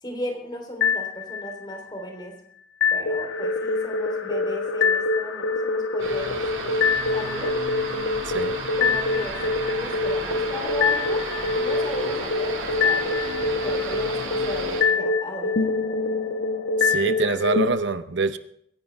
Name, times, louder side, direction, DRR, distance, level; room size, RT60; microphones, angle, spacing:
voice 1, 0.0-2.4 2.9-7.5 8.8-11.3 11.5-13.2 13.6-15.7, equal, 25° left, 3 dB, 3.5 m, -35 dB
sound 1, 0.8-1.8 2.8-17.7, left 4 dB, 80° left, 1.4 m, -25 dB
sound 2, 6.0-14.8, right 3 dB, 85° right, 6.3 m, -34 dB
voice 2, 8.3-8.6 16.8-18.4, right 4 dB, 65° right, 11 dB, 0.7 m, -25 dB
23.0 x 10.5 x 3.5 m, 0.68 s
head